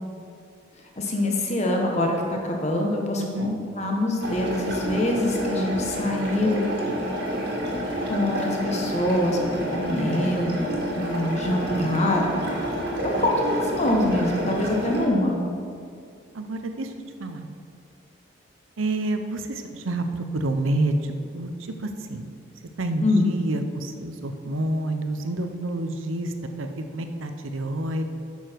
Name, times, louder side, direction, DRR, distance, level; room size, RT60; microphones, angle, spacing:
voice 1, 1.0-6.7 8.0-10.7 10.9-12.2 13.2-15.4 23.0-23.3, left 1 dB, 35° left, 1 dB, 1.2 m, -24 dB
voice 2, 3.2-3.5 16.3-16.9 17.2-17.5 18.8-20.0 20.3-21.5 21.8-22.3 22.8-28.0, right 1 dB, 90° right, 7 dB, 0.7 m, -28 dB
sound 1, 4.2-15.1, equal, 55° right, 1.8 m, -29 dB
9.3 x 7.0 x 4.5 m, 2.3 s
head